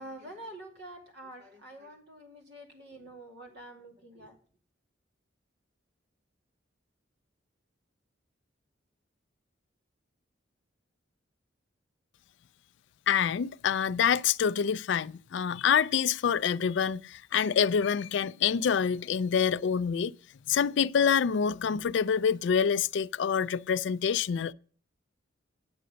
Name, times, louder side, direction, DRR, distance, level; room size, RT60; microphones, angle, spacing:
voice 1, 0.0-4.4, right 1 dB, 60° right, 2.5 m, -47 dB
voice 2, 13.1-20.1 20.5-24.5, left 7 dB, 65° left, 0.4 m, -26 dB
9.5 x 7.7 x 5.1 m
head